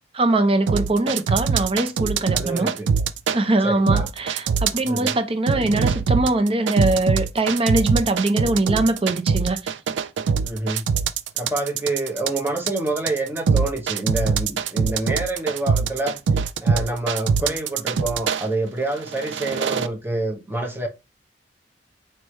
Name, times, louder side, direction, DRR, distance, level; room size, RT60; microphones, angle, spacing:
voice 1, 0.1-2.7 3.3-9.6, right 2 dB, 30° right, 0.6 m, -22 dB
sound 1, 0.7-3.4 3.9-5.2 5.5-18.4 19.0-19.9, right 6 dB, 90° right, 0.4 m, -22 dB
voice 2, 2.3-2.9 3.6-4.1 4.8-5.2 10.4-10.8 11.4-16.2 16.6-20.9, right 2 dB, 10° right, 0.9 m, -27 dB
4.4 x 3.3 x 3.1 m
head